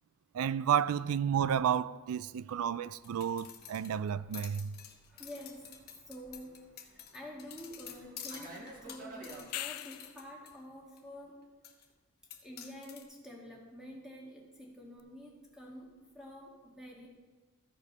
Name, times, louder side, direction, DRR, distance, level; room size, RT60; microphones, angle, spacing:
voice 1, 0.3-4.8, right 8 dB, 75° right, 0.3 m, -31 dB
sound 1, 2.9-10.5 11.0-11.1 11.6-11.9 12.3-13.0, left 8 dB, 45° left, 1.0 m, -49 dB
Fixed-wing aircraft airplane, 3.0-9.5, right 2 dB, 35° right, 1.5 m, -53 dB
voice 2, 5.1-11.4 12.4-17.1, equal, 5° right, 1.8 m, -49 dB
sound 2, 9.3-10.3 15.0-15.1, left 13 dB, 90° left, 0.4 m, -40 dB
14.0 x 5.1 x 5.4 m
head